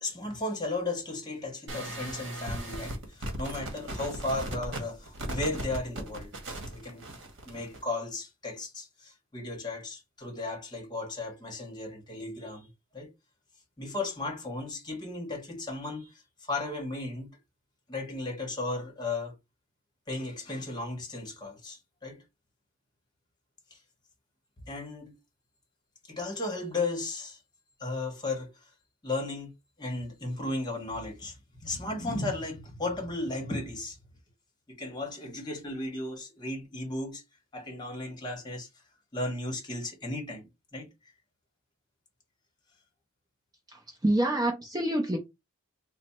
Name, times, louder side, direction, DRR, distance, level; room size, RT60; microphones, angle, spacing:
voice 1, 0.0-6.3 6.7-7.1 7.4-12.7 12.9-13.1 13.8-17.3 17.9-19.3 20.1-22.2 23.7-23.8 24.7-25.2 26.0-27.4 27.8-28.7 29.0-29.5 29.8-34.0 34.7-37.2 37.5-38.7 39.1-40.9, left 2 dB, 20° left, 1.0 m, -35 dB
sound 1, 1.7-7.8, right 1 dB, 55° right, 1.1 m, -37 dB
voice 2, 43.7-45.2, right 1 dB, 15° right, 0.5 m, -27 dB
3.3 x 2.0 x 4.2 m
head